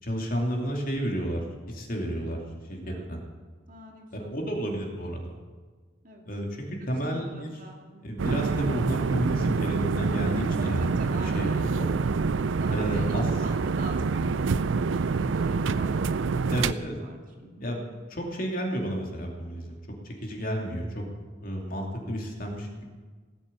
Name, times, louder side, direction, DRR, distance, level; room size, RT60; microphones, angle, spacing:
voice 1, 0.0-2.4 2.7-3.2 4.1-5.4 6.3-7.5 8.0-11.9 12.7-13.3 16.5-17.0 17.6-17.8 18.1-19.8 20.0-21.0 21.4-22.8, equal, 50° left, 1 dB, 2.6 m, -31 dB
voice 2, 3.7-4.8 6.0-6.2 6.8-8.3 10.6-12.2 12.6-16.3 16.6-17.7, right 1 dB, 45° right, 1 dB, 2.5 m, -44 dB
sound 1, 8.2-16.7, right 4 dB, 85° right, 0.5 m, -26 dB
17.5 x 8.1 x 8.6 m, 1.4 s
head